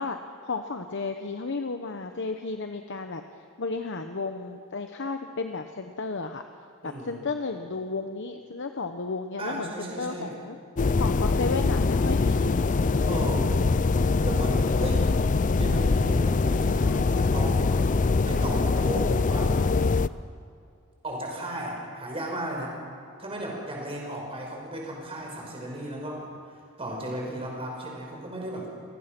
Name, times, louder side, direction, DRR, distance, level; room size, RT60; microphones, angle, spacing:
voice 1, 0.0-3.2 3.6-6.4 6.8-10.6 11.0-12.6, left 3 dB, 60° left, 6 dB, 1.0 m, -33 dB
voice 2, 6.8-7.2 9.4-10.3 13.0-15.1 15.6-17.7 18.2-19.5 21.0-22.8 23.2-28.7, right 1 dB, 25° right, -1 dB, 5.5 m, -35 dB
sound 1, 10.8-20.1, left 3 dB, 35° left, 0.5 m, -23 dB
28.5 x 19.5 x 6.1 m, 2.4 s
head